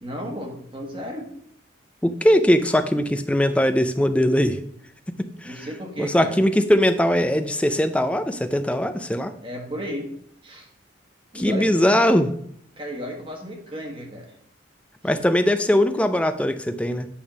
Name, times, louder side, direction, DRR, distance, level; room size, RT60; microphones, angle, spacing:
voice 1, 0.0-1.3 5.4-6.4 9.4-10.1 10.4-10.7 11.3-12.1 12.8-14.3, equal, 25° right, 1 dB, 1.4 m, -34 dB
voice 2, 2.0-4.6 5.2-5.7 6.0-9.3 11.3-12.3 15.0-17.1, equal, 5° left, 9 dB, 0.4 m, -20 dB
8.6 x 3.5 x 5.8 m, 0.69 s
head